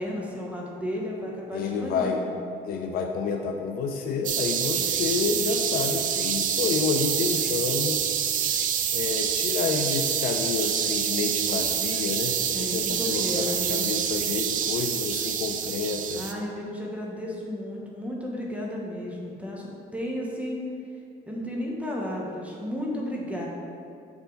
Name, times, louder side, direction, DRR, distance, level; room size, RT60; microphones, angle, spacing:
voice 1, 0.0-2.3 12.5-14.1 16.1-20.6 21.3-23.5, left 1 dB, 10° right, -3 dB, 1.0 m, -33 dB
voice 2, 1.5-2.2 2.6-8.0 8.9-16.3, left 5 dB, 60° left, 3 dB, 0.5 m, -29 dB
sound 1, 4.2-16.3, right 8 dB, 50° right, 0.5 m, -27 dB
6.6 x 4.8 x 3.9 m, 2.4 s
cardioid pair, 110°, 17 cm